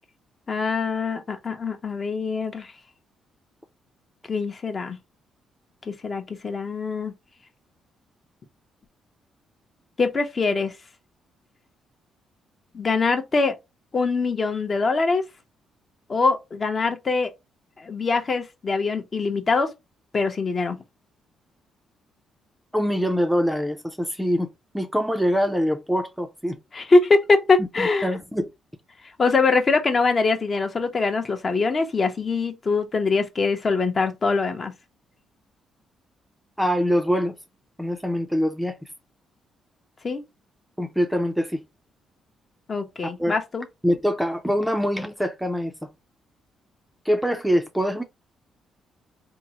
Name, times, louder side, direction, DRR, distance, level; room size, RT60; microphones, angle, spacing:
voice 1, 0.5-2.7 4.3-5.0 5.9-7.1 10.0-10.7 12.7-13.6 13.9-15.2 16.1-17.3 17.8-19.7 20.1-20.8 26.7-28.1 29.2-34.7 40.0-40.2 42.7-43.7, left 4 dB, 35° left, 0.7 m, -23 dB
voice 2, 22.7-26.6 27.6-28.5 36.6-37.3 37.8-38.8 40.8-41.6 43.2-43.3 43.8-45.9 47.1-48.0, equal, ahead, 0.5 m, -24 dB
3.6 x 2.0 x 2.8 m
cardioid pair, 90°, 0 cm